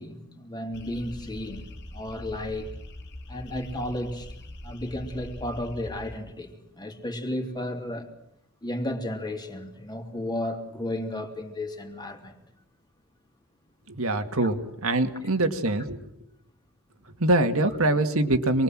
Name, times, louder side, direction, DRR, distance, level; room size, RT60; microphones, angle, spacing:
voice 1, 0.0-1.7 1.9-2.7 3.3-8.1 8.6-12.4 14.4-14.5, left 1 dB, 20° left, 3.1 m, -33 dB
sound 1, 0.7-6.2, left 1 dB, 55° left, 2.3 m, -42 dB
voice 2, 13.9-14.6 14.8-16.0 17.2-18.6, right 2 dB, 70° right, 2.1 m, -23 dB
27.5 x 21.5 x 7.6 m
head